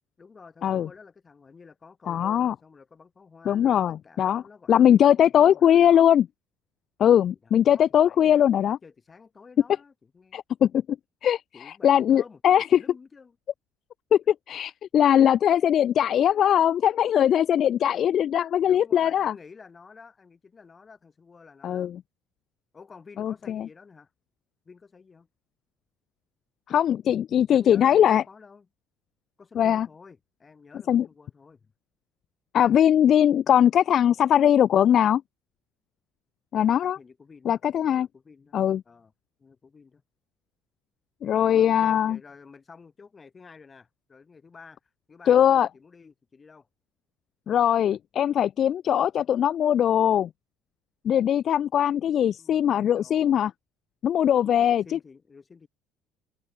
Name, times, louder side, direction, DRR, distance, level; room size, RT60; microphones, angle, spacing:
voice 1, 0.2-6.1 7.4-10.4 11.5-13.4 18.6-21.9 22.7-24.1 24.7-25.3 27.5-28.7 29.4-31.7 36.6-38.6 38.9-39.1 39.4-40.0 41.4-44.8 45.1-46.7 52.4-53.4 54.5-55.7, left 5 dB, 20° left, 4.1 m, -50 dB
voice 2, 2.1-2.5 3.5-4.4 4.7-6.2 7.0-8.8 10.3-10.8 11.2-12.8 14.1-19.3 21.6-22.0 23.2-23.7 26.7-28.2 29.6-29.9 30.9-31.1 32.5-35.2 36.5-37.0 37.5-38.1 38.5-38.8 41.2-42.2 45.3-45.7 47.5-50.3 51.0-53.5 54.0-55.0, left 10 dB, 40° left, 0.4 m, -21 dB
cardioid pair, 160°, 0 cm